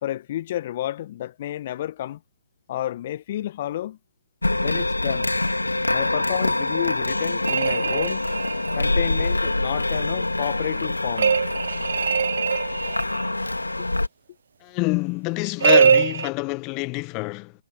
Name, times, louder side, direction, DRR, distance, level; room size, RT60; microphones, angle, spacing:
voice 1, 0.0-2.2 2.7-4.0 4.6-5.3 5.9-8.2 8.7-11.4, left 13 dB, 40° left, 1.7 m, -30 dB
sound 1, 4.4-14.1, left 2 dB, 85° left, 3.1 m, -25 dB
sound 2, 7.5-8.8 11.2-13.3 15.6-16.3, right 7 dB, 60° right, 0.7 m, -21 dB
voice 2, 14.6-17.5, left 28 dB, 25° left, 1.5 m, -26 dB
figure-of-eight pair, 130°, 0 cm